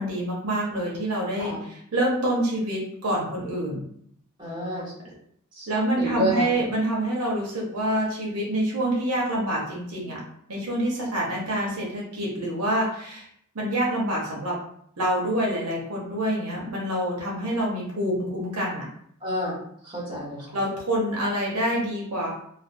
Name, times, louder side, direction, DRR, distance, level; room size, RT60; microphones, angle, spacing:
voice 1, 0.0-3.8 5.7-10.2 10.5-13.3 13.5-14.6 15.0-18.9 20.5-22.3, right 1 dB, 90° right, -3 dB, 0.8 m, -26 dB
voice 2, 4.4-4.9 5.6-5.7 6.0-6.5 19.2-19.5 19.8-20.6, equal, 20° right, -7 dB, 1.1 m, -29 dB
2.4 x 2.3 x 2.5 m, 0.68 s
head